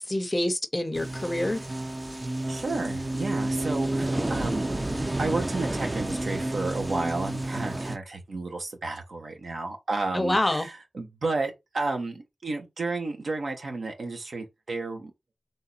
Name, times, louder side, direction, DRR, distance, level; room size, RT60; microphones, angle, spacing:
voice 1, 0.1-1.6 10.1-10.7, left 1 dB, 25° left, 0.6 m, -26 dB
sound 1, 0.9-8.0, right 1 dB, 25° right, 0.6 m, -30 dB
voice 2, 2.5-4.7 5.0-15.1, right 3 dB, 70° right, 1.3 m, -32 dB
3.8 x 3.3 x 4.1 m
wide cardioid pair, 85°, 0 cm